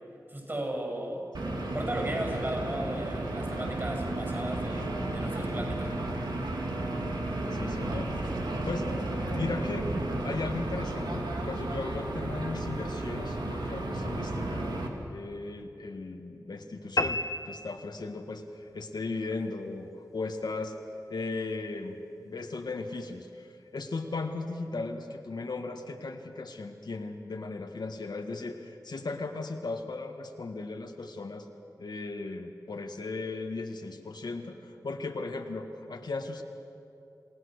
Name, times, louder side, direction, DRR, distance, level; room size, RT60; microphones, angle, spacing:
voice 1, 0.3-1.2 1.7-6.1, right 1 dB, 35° right, 1 dB, 7.5 m, -35 dB
sound 1, 1.3-14.9, right 2 dB, 90° right, 2.3 m, -33 dB
voice 2, 7.5-8.1 8.7-8.9 9.3-9.9 10.2-14.8 15.1-20.7 21.1-31.5 31.8-36.4, left 3 dB, 80° left, 4 dB, 1.5 m, -37 dB
sound 2, 17.0-18.5, left 2 dB, 50° left, 0.7 m, -32 dB
28.0 x 18.0 x 6.5 m, 2.7 s
wide cardioid pair, 85°, 7 cm